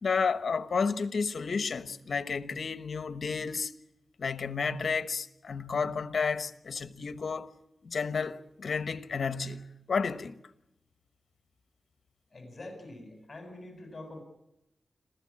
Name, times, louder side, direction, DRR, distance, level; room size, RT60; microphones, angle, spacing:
voice 1, 0.0-3.7 4.2-7.5 7.8-10.3, left 5 dB, 65° left, 1.1 m, -31 dB
voice 2, 12.3-14.2, left 2 dB, 30° left, 7.6 m, -45 dB
27.0 x 15.5 x 8.7 m
wide cardioid pair, 105°, 0 cm